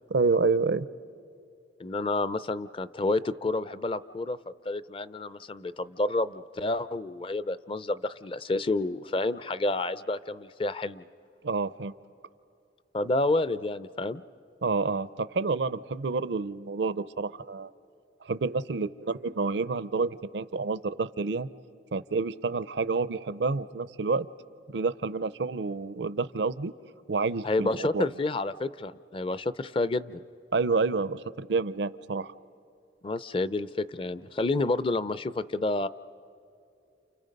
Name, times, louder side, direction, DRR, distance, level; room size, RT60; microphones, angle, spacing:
voice 1, 0.1-0.9 11.4-11.9 14.6-17.7 18.2-21.5 21.9-24.3 24.7-26.7 27.1-28.1 30.5-32.3, right 4 dB, 75° right, 16 dB, 0.6 m, -28 dB
voice 2, 1.8-4.4 4.6-11.0 12.9-14.2 27.4-30.2 33.0-35.9, left 2 dB, 30° left, 15 dB, 0.5 m, -29 dB
29.5 x 29.0 x 5.3 m, 2.6 s
head